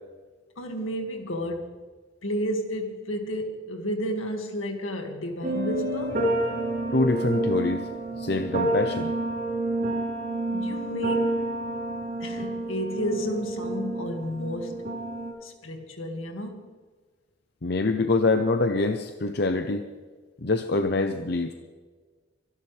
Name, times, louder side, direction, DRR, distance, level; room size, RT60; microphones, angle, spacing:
voice 1, 0.6-1.8 2.2-6.2 10.5-11.4 12.2-14.8 15.4-16.7, equal, 85° left, 2.1 m, -32 dB
sound 1, 5.4-15.3, right 2 dB, 45° right, 3.6 m, -29 dB
voice 2, 6.9-7.9 8.2-9.1 17.6-19.8 20.4-21.5, left 3 dB, 50° left, 0.7 m, -25 dB
24.5 x 11.5 x 3.4 m
head